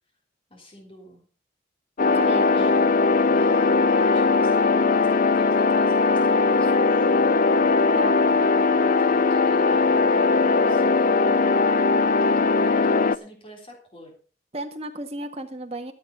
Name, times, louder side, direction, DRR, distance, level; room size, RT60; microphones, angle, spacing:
voice 1, 0.5-1.3 2.0-3.0 3.3-7.3 8.2-11.7 12.2-14.1, right 1 dB, 30° left, 1 dB, 3.6 m, -44 dB
sound 1, 2.0-13.2, left 4 dB, 45° left, 0.5 m, -19 dB
voice 2, 2.1-2.7 7.9-8.2 14.5-15.9, right 1 dB, 35° right, 4 dB, 1.7 m, -34 dB
13.0 x 8.4 x 5.6 m, 0.40 s
head